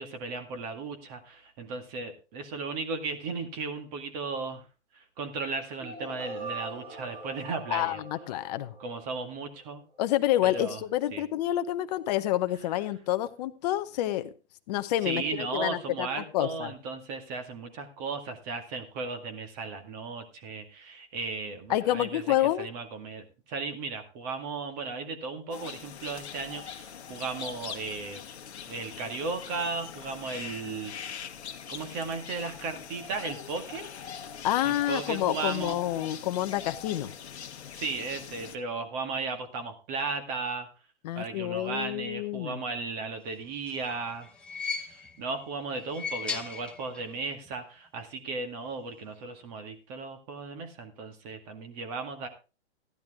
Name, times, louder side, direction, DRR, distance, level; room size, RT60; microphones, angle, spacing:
voice 1, 0.0-4.7 4.9-8.0 8.8-9.8 10.4-10.8 11.1-11.2 15.0-28.2 28.7-31.1 31.7-34.3 34.6-35.8 37.7-40.7 41.2-44.3 44.8-52.3, right 4 dB, 35° right, 7 dB, 2.0 m, -36 dB
sound 1, 5.8-9.7, right 2 dB, 70° right, 5.9 m, -42 dB
voice 2, 7.7-8.7 10.0-14.3 14.7-16.1 16.3-16.7 21.7-22.7 34.4-37.1 41.0-42.6, left 13 dB, 35° left, 12 dB, 0.8 m, -28 dB
sound 2, 25.5-38.6, left 8 dB, 70° left, 1.4 m, -42 dB
sound 3, 43.4-45.3 45.8-47.2 47.5-47.6 48.7-48.8, left 5 dB, 5° left, 0.7 m, -38 dB
14.0 x 10.5 x 3.6 m, 0.32 s
hypercardioid pair, 140°, 35 cm